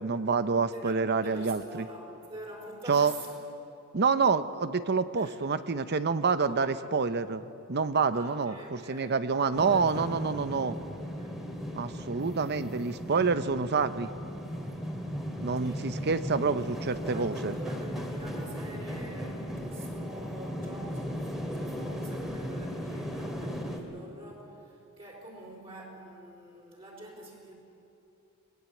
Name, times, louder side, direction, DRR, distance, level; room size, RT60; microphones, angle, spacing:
voice 1, 0.0-1.8 2.9-3.1 3.9-10.8 11.7-14.1 15.4-17.6, right 5 dB, 50° right, 13 dB, 0.8 m, -27 dB
voice 2, 0.7-3.3 5.2-5.4 6.4-6.9 8.1-10.3 11.2-11.4 15.6-15.9 17.0-27.5, right 1 dB, 25° right, -3 dB, 4.6 m, -46 dB
sound 1, 9.5-23.8, equal, ahead, 2.3 m, -37 dB
22.0 x 20.0 x 8.5 m, 2.8 s
head